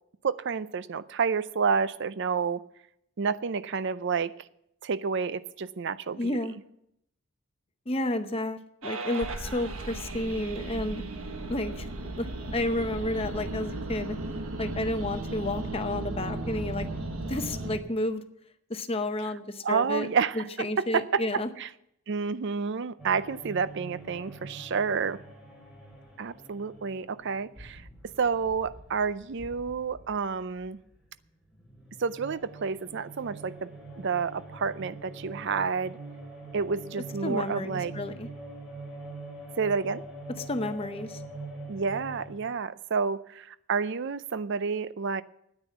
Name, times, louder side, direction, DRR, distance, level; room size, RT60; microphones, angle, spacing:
voice 1, 0.2-2.6 3.2-4.3 4.8-6.4 19.6-21.7 22.1-25.2 26.2-27.9 28.2-30.8 32.0-33.7 34.0-36.0 36.5-37.9 39.6-40.0 41.7-45.2, right 5 dB, 55° right, 0.5 m, -29 dB
voice 2, 6.2-6.5 7.9-11.0 11.5-11.9 12.2-12.3 12.5-14.2 14.6-16.9 17.3-18.2 18.7-20.1 20.4-21.5 37.2-38.3 40.4-41.2, left 1 dB, 25° left, 0.7 m, -31 dB
sound 1, 8.8-17.8, right 2 dB, 75° right, 1.3 m, -35 dB
sound 2, 23.0-31.1 31.4-42.3, right 2 dB, 5° right, 3.1 m, -44 dB
9.6 x 9.0 x 8.2 m
head